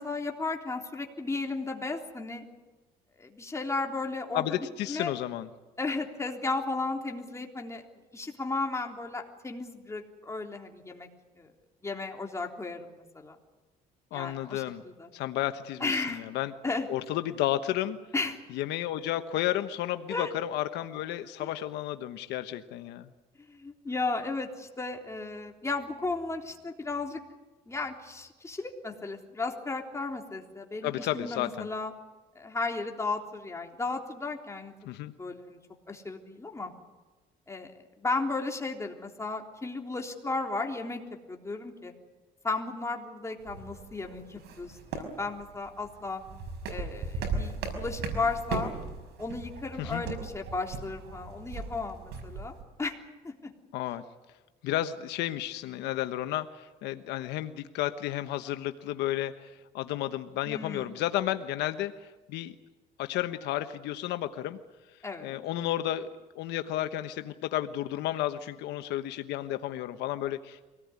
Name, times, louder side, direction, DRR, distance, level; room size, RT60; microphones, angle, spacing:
voice 1, 0.0-2.4 3.2-5.1 5.8-7.8 8.1-11.1 11.4-11.5 11.8-13.4 14.1-15.1 15.8-16.3 16.6-16.9 18.1-18.4 20.1-20.3 21.4-21.5 23.5-27.2 27.7-31.9 32.4-34.9 35.2-35.6 35.9-36.7 37.5-37.7 38.0-41.0 41.3-41.9 42.4-46.2 46.7-48.7 49.2-52.5 52.8-53.0 53.2-53.5 60.5-61.0 65.0-65.4, left 3 dB, 15° left, 2 dB, 3.5 m, -34 dB
voice 2, 4.3-5.5 14.1-14.8 15.1-16.5 16.9-18.0 18.5-23.1 30.8-31.7 34.8-35.1 49.8-50.0 53.7-54.0 54.6-62.5 63.0-64.6 65.2-66.1 66.3-70.6, left 13 dB, 85° left, 9 dB, 1.2 m, -32 dB
sound 1, 43.4-52.6, right 4 dB, 80° right, 5.6 m, -38 dB
24.5 x 18.5 x 9.7 m, 1.2 s
cardioid pair, 110°, 17 cm